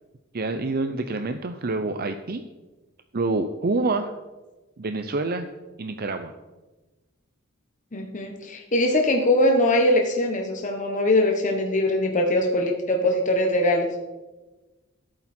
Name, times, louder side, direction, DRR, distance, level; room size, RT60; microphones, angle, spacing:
voice 1, 0.3-2.4 3.1-4.1 4.8-5.5 5.8-6.3, right 3 dB, 45° right, 7 dB, 0.6 m, -27 dB
voice 2, 7.9-13.9, left 1 dB, 40° left, 1 dB, 1.2 m, -22 dB
15.0 x 8.9 x 4.4 m, 1.2 s
head